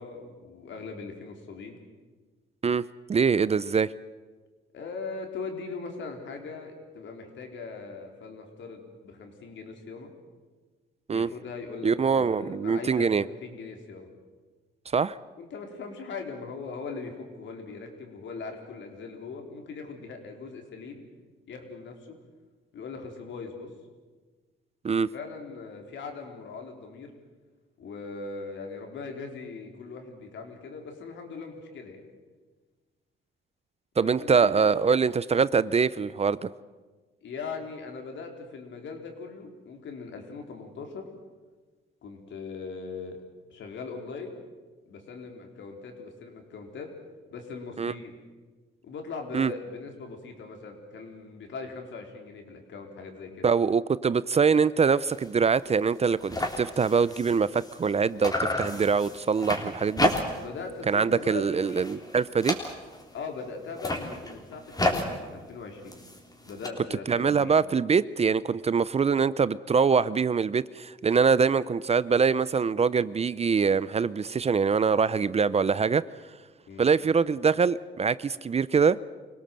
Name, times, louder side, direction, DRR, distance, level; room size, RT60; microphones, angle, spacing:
voice 1, 0.0-1.8 4.7-10.1 11.1-14.1 15.4-21.0 21.5-22.2 22.7-23.7 25.0-27.1 27.8-32.0 34.0-34.8 37.2-41.1 42.0-43.2 43.5-44.4 44.9-46.9 47.3-48.2 48.8-53.5 60.4-61.8 63.1-66.0 66.4-67.6 76.7-76.8, left 4 dB, 70° left, 3 dB, 4.1 m, -40 dB
voice 2, 2.6-3.9 11.1-11.3 11.8-13.2 14.9-15.2 24.8-25.1 34.0-36.5 47.8-47.9 49.3-49.5 53.4-60.1 60.9-62.6 67.1-76.0 76.8-79.0, right 5 dB, 30° right, 18 dB, 0.6 m, -24 dB
sound 1, 55.1-55.3 55.7-55.8 56.0-57.9 58.2-60.6 60.9-61.3 61.6-63.1 63.6-66.7, left 1 dB, 20° left, 3.7 m, -32 dB
25.0 x 17.5 x 7.7 m, 1.3 s
cardioid pair, 90°, 20 cm